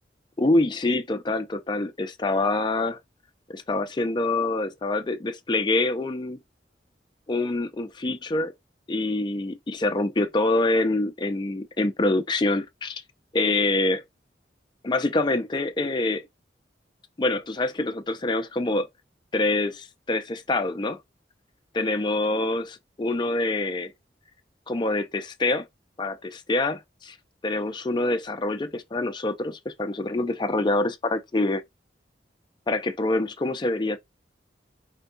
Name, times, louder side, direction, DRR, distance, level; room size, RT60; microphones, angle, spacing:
voice 1, 0.4-3.0 3.5-6.4 7.3-8.5 8.9-13.0 13.3-14.0 14.8-16.2 17.2-18.9 19.3-21.0 21.7-23.9 24.7-25.7 26.0-27.2 27.4-31.6 32.7-34.0, left 2 dB, 25° left, 0.4 m, -25 dB
4.5 x 2.2 x 3.8 m
head